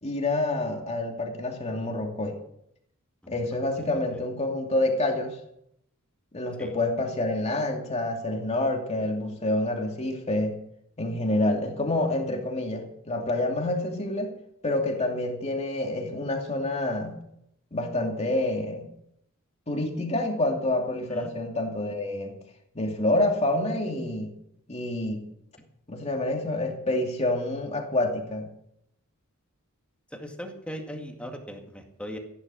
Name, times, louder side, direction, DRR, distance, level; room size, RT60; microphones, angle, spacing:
voice 1, 0.0-2.4 3.3-5.4 6.3-10.6 11.0-14.3 14.6-17.2 17.7-18.9 19.7-22.3 22.7-24.3 24.7-25.3 25.9-28.5, left 2 dB, 30° left, 2 dB, 2.6 m, -27 dB
voice 2, 30.1-32.2, equal, 5° left, 2 dB, 2.1 m, -39 dB
15.0 x 11.0 x 6.3 m, 0.76 s
head